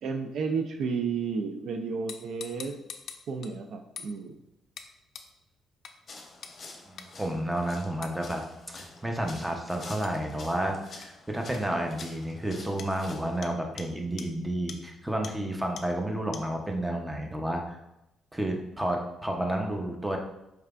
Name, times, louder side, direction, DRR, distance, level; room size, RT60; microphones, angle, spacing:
voice 1, 0.0-2.8 3.3-4.3, right 5 dB, 70° right, 6 dB, 0.3 m, -32 dB
sound 1, 2.1-3.5 4.0-4.1 4.8-4.9 5.1-5.3 5.8-5.9 6.4-6.6 7.0-7.1 8.0-8.2 10.0-10.2 11.0-11.1 11.5-11.6 12.0-12.1 12.8-12.9 13.4-13.5 13.8-13.9 14.2-14.3 14.7-14.8 15.2-15.3 15.8-15.9 16.3-16.4, left 7 dB, 65° left, 0.4 m, -42 dB
sound 2, 6.1-13.4, left 3 dB, 40° left, 0.7 m, -48 dB
voice 2, 6.8-8.4 8.7-17.8 18.3-20.2, right 1 dB, 10° right, 2 dB, 0.7 m, -31 dB
4.7 x 3.2 x 2.4 m, 0.88 s
cardioid pair, 90°, 0 cm